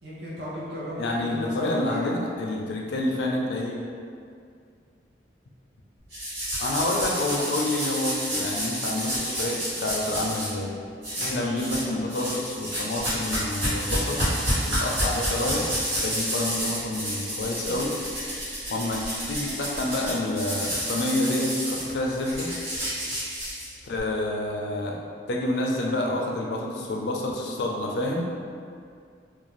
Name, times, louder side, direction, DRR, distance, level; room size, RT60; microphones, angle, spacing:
voice 1, 0.0-2.0 11.1-11.7, equal, 70° right, -8 dB, 0.8 m, -35 dB
voice 2, 1.0-3.8 6.6-10.7 11.2-14.2 14.7-17.9 18.7-22.5 23.8-25.0 25.3-28.3, left 1 dB, 70° left, -1 dB, 0.4 m, -28 dB
sound 1, 6.1-10.5 11.0-11.8 12.1-24.0, equal, 85° right, 1.2 m, -30 dB
2.5 x 2.2 x 3.0 m, 2.3 s
head